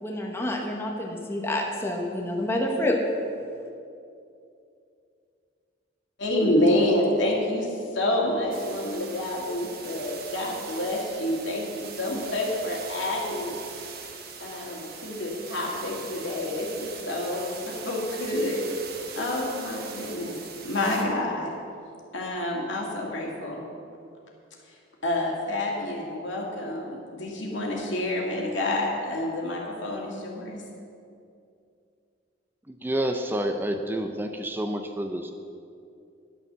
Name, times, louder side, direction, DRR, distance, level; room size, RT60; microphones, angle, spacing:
voice 1, 0.0-3.0, left 1 dB, 15° left, 0 dB, 1.1 m, -28 dB
voice 2, 6.2-13.5 14.4-18.6 19.2-20.4 20.6-21.5 22.1-23.6 25.0-30.6, left 1 dB, 75° left, -2 dB, 2.2 m, -28 dB
sound 1, 8.5-21.0, right 6 dB, 55° right, 1.2 m, -41 dB
voice 3, 32.7-35.3, right 1 dB, 10° right, 5 dB, 0.5 m, -29 dB
11.0 x 7.0 x 6.8 m, 2.5 s
head